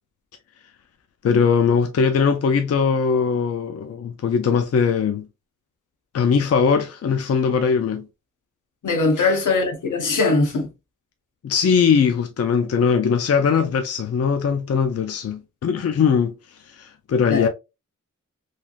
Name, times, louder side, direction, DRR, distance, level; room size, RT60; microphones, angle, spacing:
voice 1, 1.2-5.3 6.1-8.0 9.2-9.3 11.4-16.3 16.7-17.5, left 6 dB, 55° left, 0.4 m, -20 dB
voice 2, 8.8-10.7 17.3-17.5, left 3 dB, 80° left, 0.9 m, -20 dB
3.2 x 2.4 x 2.4 m
wide cardioid pair, 120°, 30 cm